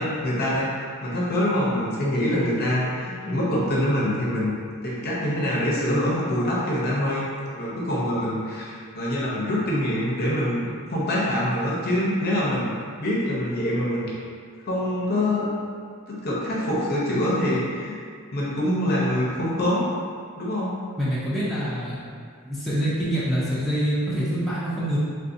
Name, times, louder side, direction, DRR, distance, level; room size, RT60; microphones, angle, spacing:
voice 1, 0.0-4.5 4.8-7.3 7.5-10.6 10.9-12.7 13.0-14.1 14.6-15.5 16.1-17.9 18.3-19.8 20.4-20.7, left 1 dB, 45° left, -6 dB, 0.7 m, -25 dB
voice 2, 21.0-22.0 22.4-25.0, equal, ahead, -11 dB, 0.5 m, -25 dB
3.3 x 2.6 x 2.6 m, 2.1 s
head